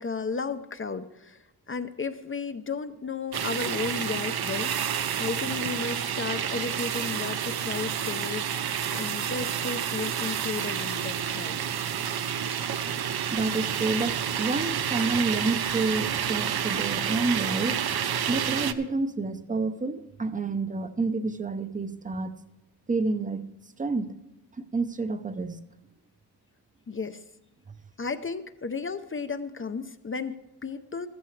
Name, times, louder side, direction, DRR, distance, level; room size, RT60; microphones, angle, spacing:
voice 1, 0.0-1.4 1.7-8.6 8.9-11.6 26.9-27.2 28.0-31.1, left 4 dB, 30° left, 9 dB, 0.5 m, -34 dB
sound 1, 3.3-18.7, right 8 dB, 65° right, 0.7 m, -29 dB
voice 2, 13.3-17.9 18.3-22.4 22.9-23.5 23.8-24.1 24.6-25.6, right 3 dB, 20° right, 11 dB, 0.6 m, -29 dB
14.5 x 14.0 x 3.2 m, 0.99 s
wide cardioid pair, 175°, 41 cm